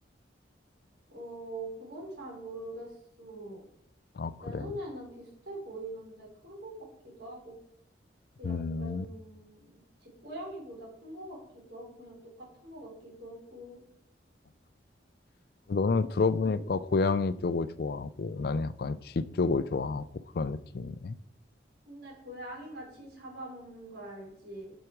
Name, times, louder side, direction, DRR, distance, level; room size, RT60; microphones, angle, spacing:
voice 1, 1.1-3.7 4.4-6.8 7.0-7.6 8.4-13.8 16.4-16.6 21.9-24.7, right 1 dB, 70° right, -3 dB, 4.3 m, -43 dB
voice 2, 4.2-4.7 8.4-9.1 15.7-20.1 20.3-21.2, left 4 dB, 55° left, 16 dB, 0.4 m, -29 dB
7.8 x 7.2 x 4.7 m, 0.73 s
head